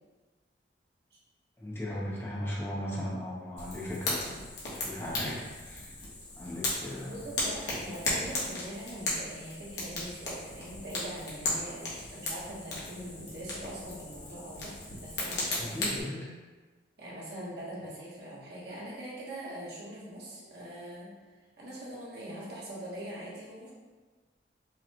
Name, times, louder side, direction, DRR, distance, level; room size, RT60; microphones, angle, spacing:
voice 1, 1.6-5.9 6.4-7.2 7.9-8.0 15.6-16.3, left 1 dB, 15° left, -6 dB, 0.5 m, -37 dB
Fire, 3.6-16.0, left 2 dB, 65° left, 1.1 m, -36 dB
voice 2, 7.0-14.7 15.0-16.1 17.0-21.1 21.6-23.7, right 1 dB, 60° right, -6 dB, 1.1 m, -42 dB
4.9 x 2.3 x 2.9 m, 1.3 s
head